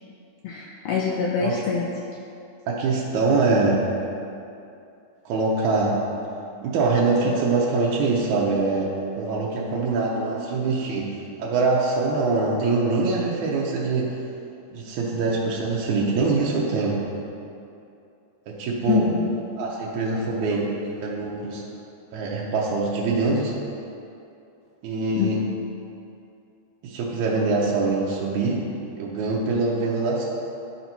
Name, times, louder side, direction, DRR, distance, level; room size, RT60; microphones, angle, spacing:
voice 1, 0.4-1.9 5.8-5.9 7.4-7.5 9.6-9.9 18.9-19.7 20.1-20.2 21.4-21.6 25.1-25.3 29.5-29.7, left 5 dB, 80° left, -1 dB, 1.5 m, -26 dB
voice 2, 2.7-3.9 5.3-6.0 6.6-14.2 14.7-17.0 18.5-19.1 19.6-21.6 22.1-23.5 24.8-25.4 26.8-28.7 29.0-30.2, right 3 dB, 80° right, -4 dB, 2.2 m, -24 dB
11.0 x 4.1 x 4.4 m, 2.6 s
omnidirectional pair, 3.3 m